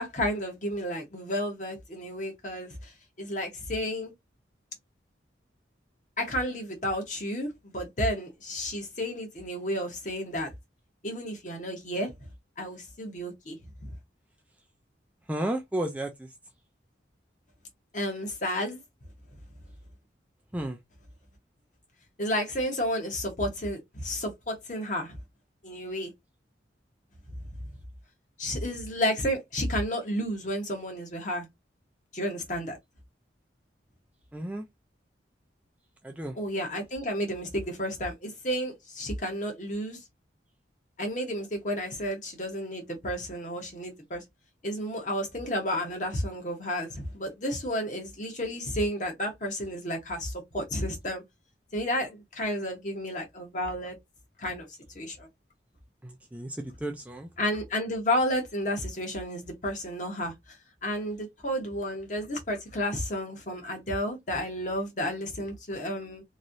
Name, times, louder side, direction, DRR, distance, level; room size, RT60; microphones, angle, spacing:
voice 1, 0.0-2.9 3.2-4.1 6.2-10.5 11.0-12.1 12.6-13.6 13.8-13.9 17.9-18.8 22.2-25.2 25.6-26.1 28.4-31.5 32.1-32.8 36.4-40.0 41.0-44.2 44.6-51.2 51.7-54.0 54.4-54.7 54.9-55.3 57.4-60.6 60.8-66.2, equal, 40° left, 1.1 m, -31 dB
voice 2, 15.3-16.3 20.5-20.8 34.3-34.7 36.0-36.4 56.0-57.3, right 1 dB, 10° right, 0.4 m, -33 dB
3.0 x 2.7 x 2.6 m
head